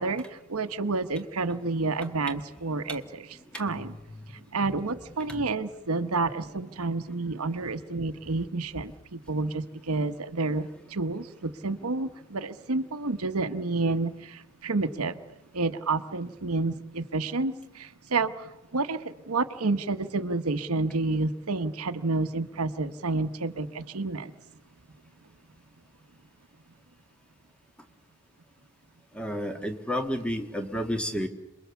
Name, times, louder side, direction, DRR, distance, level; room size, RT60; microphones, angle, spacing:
voice 1, 0.0-4.0 4.3-24.3, right 3 dB, 80° right, 10 dB, 1.1 m, -30 dB
voice 2, 29.2-31.3, equal, 5° left, 6 dB, 1.7 m, -30 dB
27.5 x 22.0 x 7.1 m, 0.98 s
head